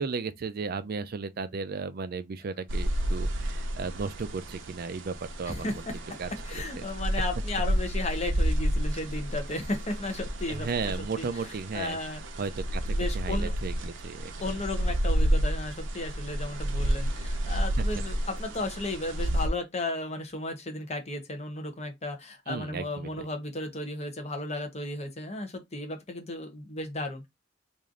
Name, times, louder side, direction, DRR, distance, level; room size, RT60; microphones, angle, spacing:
voice 1, 0.0-5.8 6.2-6.9 10.5-12.0 12.4-14.3 17.8-17.9 22.5-23.3, right 4 dB, 50° right, 0.4 m, -35 dB
sound 1, 2.7-19.5, right 1 dB, 80° right, 0.7 m, -30 dB
voice 2, 6.5-11.3 11.7-12.2 12.9-13.5 14.4-27.3, left 2 dB, 35° left, 0.9 m, -34 dB
3.2 x 2.6 x 3.7 m
head